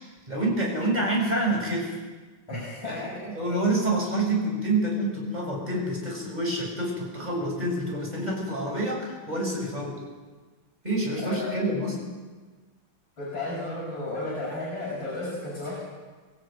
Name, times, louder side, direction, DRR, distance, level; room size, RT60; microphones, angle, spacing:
voice 1, 0.3-2.0 2.5-10.0 10.8-12.0, right 1 dB, 20° right, -1 dB, 7.2 m, -27 dB
voice 2, 2.5-3.1 11.2-11.5 13.2-15.8, left 2 dB, 65° left, -5 dB, 7.1 m, -33 dB
23.0 x 16.5 x 9.2 m, 1.3 s
omnidirectional pair, 2.2 m